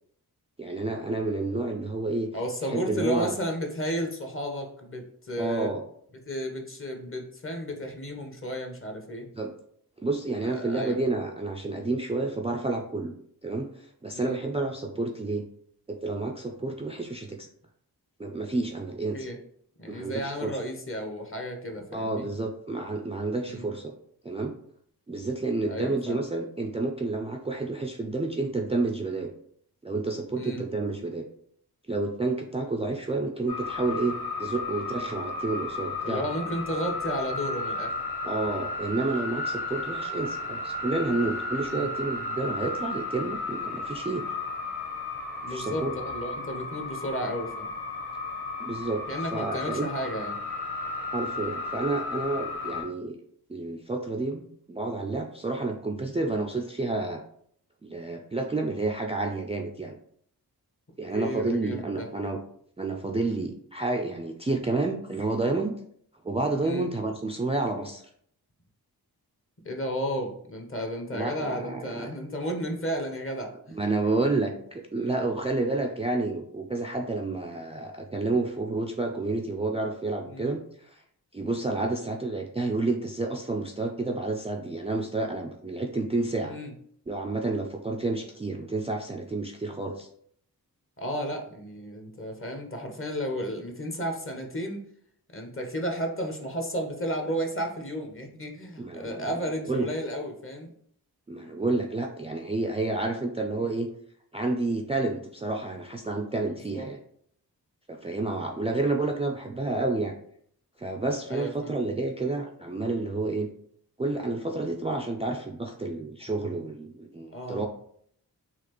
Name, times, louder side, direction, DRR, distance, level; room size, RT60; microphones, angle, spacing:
voice 1, 0.6-2.3 2.6-3.4 5.4-5.8 9.4-9.5 10.0-13.1 13.4-15.5 15.9-17.5 18.2-19.3 19.9-20.6 21.9-23.9 24.2-24.5 25.1-29.3 29.8-31.3 31.9-36.3 38.2-44.3 45.5-46.0 48.6-49.0 49.3-49.9 51.1-53.2 53.5-57.2 57.8-59.9 61.0-62.4 62.8-65.8 66.2-68.0 71.1-72.1 73.7-81.0 81.3-86.6 87.1-90.1 98.8-99.3 99.6-99.9 101.3-103.9 104.3-107.0 107.9-110.1 110.8-113.5 114.0-117.7, right 3 dB, 15° right, 1 dB, 0.4 m, -30 dB
voice 2, 2.3-5.7 6.3-9.3 10.5-11.0 14.1-14.4 19.1-19.4 19.8-22.3 23.5-23.7 25.7-26.2 30.4-30.6 36.0-37.9 41.7-41.9 45.4-47.7 49.1-50.4 61.1-62.1 66.6-66.9 69.6-73.8 75.0-75.2 80.3-80.5 86.5-86.7 91.0-94.9 95.3-100.7 103.6-103.7 106.7-106.9 111.3-111.7 117.3-117.6, equal, 30° left, 3 dB, 0.9 m, -33 dB
sound 1, 33.5-52.8, left 3 dB, 75° left, 1.1 m, -34 dB
4.1 x 2.4 x 3.0 m, 0.65 s
cardioid pair, 40°, 40 cm